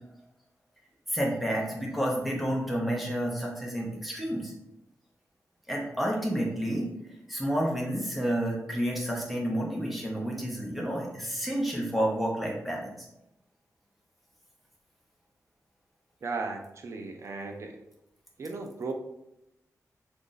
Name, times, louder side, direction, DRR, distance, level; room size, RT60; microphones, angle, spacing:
voice 1, 1.1-4.5 5.7-6.9 7.3-13.1, equal, ahead, -2 dB, 0.7 m, -30 dB
voice 2, 16.2-17.8 18.4-18.9, right 3 dB, 50° right, 4 dB, 0.4 m, -36 dB
2.9 x 2.5 x 3.8 m, 0.86 s
wide cardioid pair, 175°, 6 cm